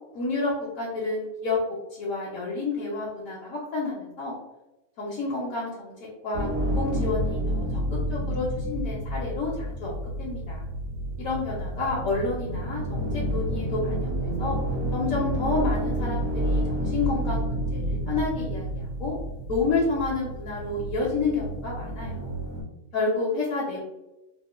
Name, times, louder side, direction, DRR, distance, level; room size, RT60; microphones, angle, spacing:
voice 1, 0.1-1.6 1.9-4.3 5.0-5.9 6.2-10.7 11.2-14.6 14.9-19.1 19.5-22.4 22.9-23.8, left 3 dB, 70° left, -5 dB, 1.0 m, -30 dB
sound 1, 6.3-22.6, equal, 70° right, 1.1 m, -29 dB
2.9 x 2.1 x 2.2 m, 0.98 s
omnidirectional pair, 1.6 m